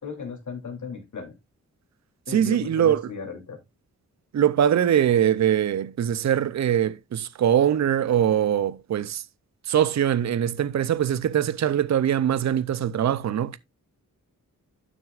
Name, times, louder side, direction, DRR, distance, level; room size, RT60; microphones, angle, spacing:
voice 1, 0.0-1.3 2.3-3.6, left 5 dB, 65° left, 3.0 m, -36 dB
voice 2, 2.3-3.1 4.3-9.2 9.7-13.6, right 10 dB, 60° right, 0.6 m, -22 dB
12.0 x 6.3 x 2.4 m
wide cardioid pair, 105°, 32 cm